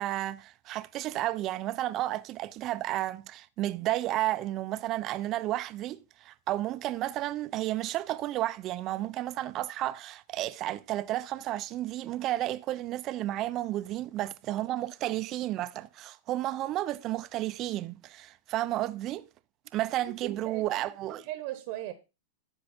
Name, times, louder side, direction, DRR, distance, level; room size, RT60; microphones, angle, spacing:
voice 1, 0.0-19.2 19.7-21.2, right 14 dB, 35° right, 0.6 m, -32 dB
voice 2, 20.0-21.9, right 14 dB, 50° right, 1.0 m, -39 dB
13.5 x 4.8 x 4.2 m
hypercardioid pair, 125°, 0 cm